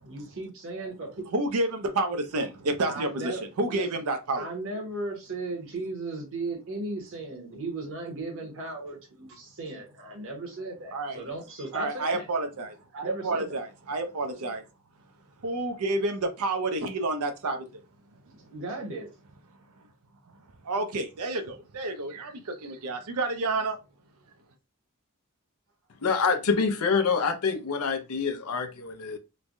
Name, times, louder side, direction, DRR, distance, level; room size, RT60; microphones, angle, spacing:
voice 1, 0.0-1.3 2.8-3.4 3.7-3.9 4.4-12.3 12.9-13.6 18.3-19.1, right 2 dB, 65° right, 1.0 m, -36 dB
voice 2, 1.3-4.5 10.9-11.2 11.7-14.6 15.4-17.7 20.6-23.8, right 2 dB, 80° right, 0.6 m, -29 dB
voice 3, 26.0-29.2, left 5 dB, 80° left, 0.6 m, -26 dB
3.2 x 2.2 x 2.5 m
head